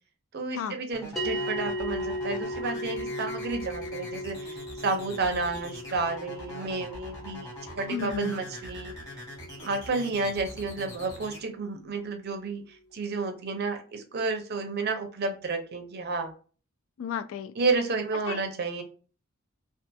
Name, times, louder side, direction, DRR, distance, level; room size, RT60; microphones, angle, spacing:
voice 1, 0.3-8.9 9.6-16.3 17.6-18.8, right 3 dB, 50° right, 0.6 m, -31 dB
sound 1, 0.9-11.4, left 1 dB, 15° left, 1.2 m, -43 dB
sound 2, 1.2-11.7, equal, ahead, 0.6 m, -38 dB
voice 2, 7.9-8.4 17.0-17.5 18.3-18.4, left 8 dB, 70° left, 0.3 m, -33 dB
2.7 x 2.4 x 2.3 m
head